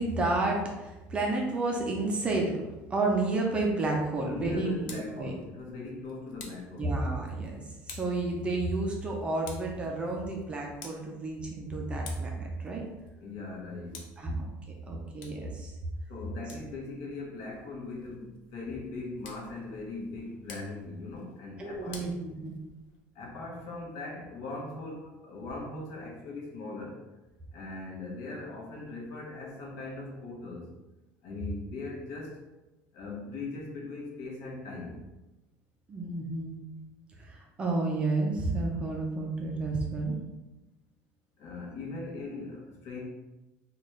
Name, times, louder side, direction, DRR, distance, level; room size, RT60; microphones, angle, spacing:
voice 1, 0.0-2.5 2.9-5.3 6.8-12.8 14.2-14.5 14.9-15.7 21.6-22.5 35.9-36.6 37.2-40.2, right 2 dB, 20° right, 0 dB, 0.4 m, -31 dB
voice 2, 4.2-6.9 13.2-14.0 16.1-22.0 23.1-27.0 27.5-30.7 31.2-32.4 32.9-35.0 41.4-43.0, left 3 dB, 60° left, -2 dB, 1.0 m, -40 dB
Tick, 4.5-23.0, left 4 dB, 80° left, 0.6 m, -53 dB
3.9 x 2.2 x 3.1 m, 1.1 s
cardioid pair, 175°, 6 cm